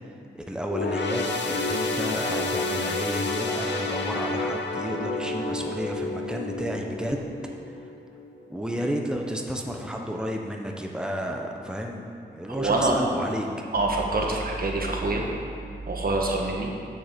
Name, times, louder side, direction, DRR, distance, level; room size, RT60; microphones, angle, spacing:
voice 1, 0.3-7.3 8.5-12.0 12.3-13.5, equal, 5° right, 1 dB, 1.1 m, -31 dB
sound 1, 0.7-8.4 8.8-9.0 9.8-9.9, left 3 dB, 85° left, 0.8 m, -30 dB
voice 2, 12.5-13.0 13.7-15.2 15.9-16.7, right 2 dB, 55° right, 0 dB, 1.6 m, -25 dB
7.8 x 6.8 x 6.9 m, 2.6 s
cardioid pair, 60°, 18 cm